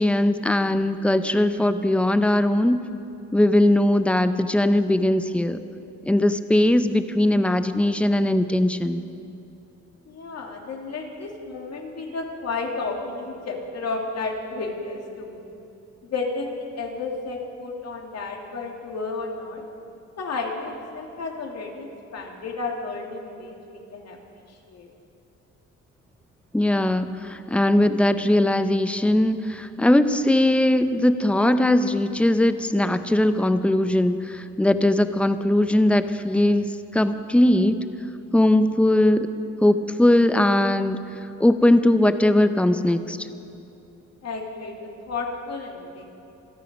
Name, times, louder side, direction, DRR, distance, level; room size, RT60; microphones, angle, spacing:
voice 1, 0.0-2.8 3.3-5.6 6.1-9.0 26.5-36.7 36.9-37.8 38.3-39.3 39.6-41.0 41.4-43.2, left 1 dB, 5° left, 10 dB, 0.7 m, -20 dB
voice 2, 10.1-15.5 16.0-19.6 20.2-24.9 44.2-46.1, left 3 dB, 55° left, 1 dB, 2.6 m, -32 dB
27.0 x 9.1 x 5.3 m, 2.8 s
cardioid pair, 90°, 30 cm